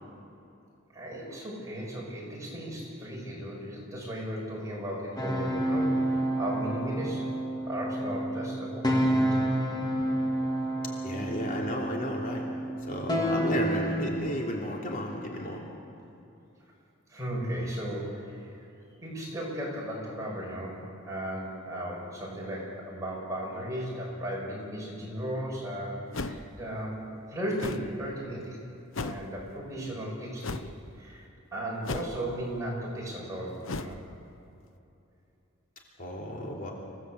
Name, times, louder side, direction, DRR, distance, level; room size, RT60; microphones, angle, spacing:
voice 1, 0.9-7.3 7.7-9.4 17.1-18.5 19.0-28.6 29.0-30.7 31.0-31.3 31.5-34.0, right 1 dB, 15° right, -4 dB, 7.4 m, -36 dB
sound 1, 5.2-14.1, right 1 dB, 20° left, 2.5 m, -29 dB
voice 2, 11.0-12.4 12.9-15.6 36.0-36.7, left 1 dB, 45° left, -2 dB, 3.1 m, -33 dB
sound 2, 26.1-26.6 27.6-27.9 28.9-29.3 30.4-30.7 31.8-32.3 33.6-34.0, left 3 dB, 75° left, 0.9 m, -35 dB
26.5 x 17.5 x 8.2 m, 2.8 s
head